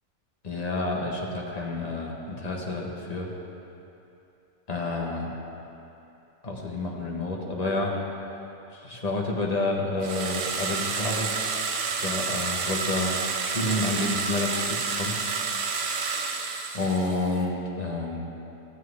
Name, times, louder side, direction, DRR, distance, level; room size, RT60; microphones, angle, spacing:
voice 1, 0.4-3.3 4.7-5.3 6.4-8.0 8.7-11.3 12.0-15.2 16.7-18.3, left 2 dB, 35° left, -1 dB, 1.1 m, -29 dB
sound 1, 10.0-17.3, right 5 dB, 65° right, 1.0 m, -29 dB
15.0 x 7.4 x 3.4 m, 2.9 s
omnidirectional pair, 1.4 m